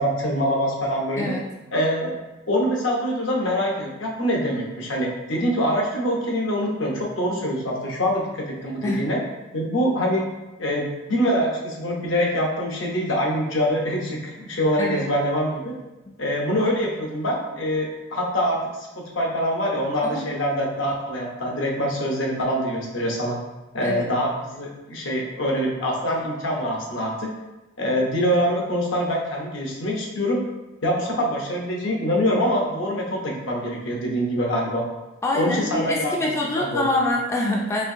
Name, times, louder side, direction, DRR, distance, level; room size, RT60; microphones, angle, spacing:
voice 1, 0.0-1.3 1.7-2.2 2.5-9.2 9.5-10.2 10.6-15.7 16.2-18.9 19.1-23.4 23.7-27.3 27.8-30.4 30.8-34.8 35.3-36.2 36.5-36.9, equal, 75° left, -1 dB, 0.8 m, -24 dB
voice 2, 14.8-15.1 20.0-20.3 23.8-24.1 35.2-37.9, left 2 dB, 15° left, -1 dB, 0.3 m, -25 dB
4.3 x 2.7 x 2.6 m, 1.1 s
head